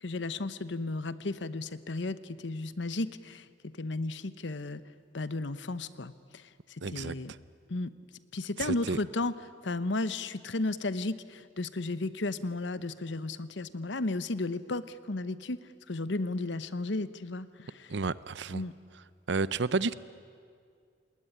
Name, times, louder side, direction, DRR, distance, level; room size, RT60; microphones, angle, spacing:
voice 1, 0.0-4.8 5.1-6.4 6.9-7.3 7.7-7.9 8.3-9.3 9.6-15.6 15.9-17.9 18.5-18.7, left 2 dB, 70° left, 14 dB, 1.0 m, -34 dB
voice 2, 6.8-7.4 8.6-9.0 17.9-18.6 19.3-20.0, right 4 dB, 70° right, 17 dB, 0.7 m, -31 dB
27.5 x 20.5 x 9.9 m, 2.2 s
head